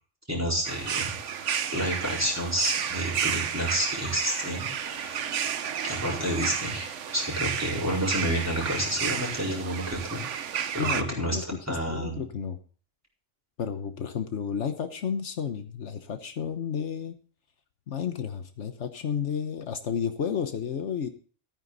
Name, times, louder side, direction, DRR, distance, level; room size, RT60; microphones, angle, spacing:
voice 1, 0.3-1.1 1.7-5.3 5.8-10.2 10.7-11.4 11.7-12.2, equal, 10° right, -3 dB, 4.5 m, -29 dB
sound 1, 0.6-11.0, right 8 dB, 85° right, 1.2 m, -32 dB
voice 2, 10.8-12.6 13.6-17.1 17.9-21.1, left 7 dB, 75° left, 8 dB, 1.3 m, -32 dB
13.5 x 9.4 x 4.0 m, 0.41 s
omnidirectional pair, 1.2 m